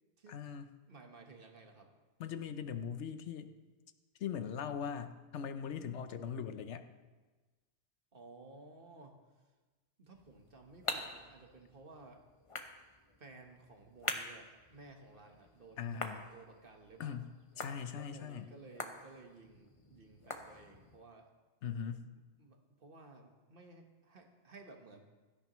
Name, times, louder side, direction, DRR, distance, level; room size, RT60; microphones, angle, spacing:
voice 1, 0.3-0.7 2.2-3.5 4.2-6.9 15.8-16.2 17.0-18.5 21.6-22.1, left 7 dB, 80° left, 10 dB, 1.0 m, -40 dB
voice 2, 0.9-1.9 8.1-9.1 10.0-12.2 13.2-17.2 17.9-21.3 22.4-25.1, right 3 dB, 50° right, 3 dB, 1.4 m, -56 dB
sound 1, 10.1-21.0, left 3 dB, 30° left, 0.8 m, -46 dB
16.5 x 12.5 x 3.1 m, 1.3 s
omnidirectional pair, 1.2 m